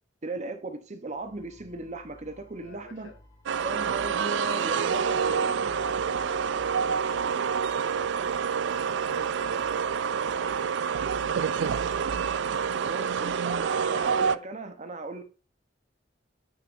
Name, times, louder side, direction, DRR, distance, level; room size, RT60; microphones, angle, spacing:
voice 1, 0.2-3.1 3.6-5.7 12.9-15.2, right 2 dB, 40° right, 0.8 m, -37 dB
sound 1, 1.0-12.2, left 1 dB, 15° left, 4.4 m, -58 dB
voice 2, 2.6-3.2 4.8-8.2 8.9-11.9 12.6-13.4, left 2 dB, 75° left, 1.8 m, -47 dB
sound 2, 3.5-14.4, right 6 dB, 70° right, 0.3 m, -27 dB
9.6 x 5.8 x 2.6 m
head